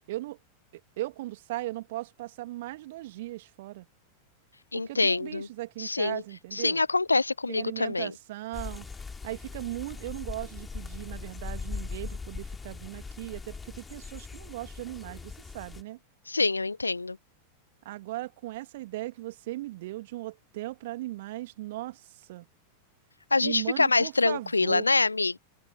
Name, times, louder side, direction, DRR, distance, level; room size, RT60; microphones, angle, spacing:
voice 1, 0.1-0.4 1.0-3.9 4.7-6.8 7.5-8.9 9.2-16.0 17.8-22.5 23.4-24.9, right 17 dB, 55° right, 2.1 m, -38 dB
voice 2, 4.7-5.5 5.8-6.2 6.6-8.1 16.3-17.2 23.3-25.4, left 3 dB, 80° left, 0.5 m, -25 dB
sound 1, 8.5-15.8, left 4 dB, 15° left, 2.4 m, -40 dB
figure-of-eight pair, 90°, 0 cm